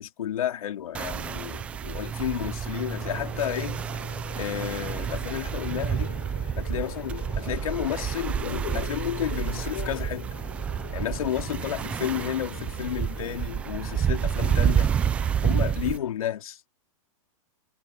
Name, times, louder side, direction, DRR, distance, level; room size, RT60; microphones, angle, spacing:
voice 1, 0.0-3.8 4.4-6.2 6.6-10.3 10.9-14.9 15.4-16.6, left 10 dB, 85° left, 4.1 m, -32 dB
sound 1, 0.9-16.0, right 8 dB, 5° right, 0.4 m, -29 dB
Subway metro underground, 3.0-16.1, left 15 dB, 50° left, 5.9 m, -43 dB
supercardioid pair, 175°, 18 cm